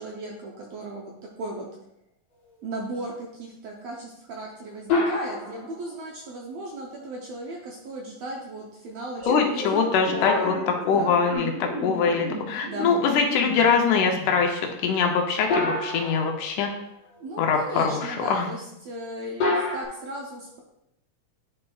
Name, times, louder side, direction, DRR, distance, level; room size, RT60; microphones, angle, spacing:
voice 1, 0.0-1.7 2.6-9.9 10.1-11.2 12.7-12.9 17.2-20.6, right 1 dB, 75° right, -1 dB, 1.6 m, -36 dB
sound 1, 4.9-6.0 10.2-11.8 15.5-16.7 19.4-19.9, left 3 dB, 55° left, 2.7 m, -27 dB
sound 2, 9.2-14.7, equal, 90° right, 4.3 m, -36 dB
voice 2, 9.3-10.5 10.9-16.7 17.4-18.5, left 5 dB, 75° left, 3 dB, 2.0 m, -23 dB
9.7 x 4.3 x 2.3 m, 0.83 s
omnidirectional pair, 3.7 m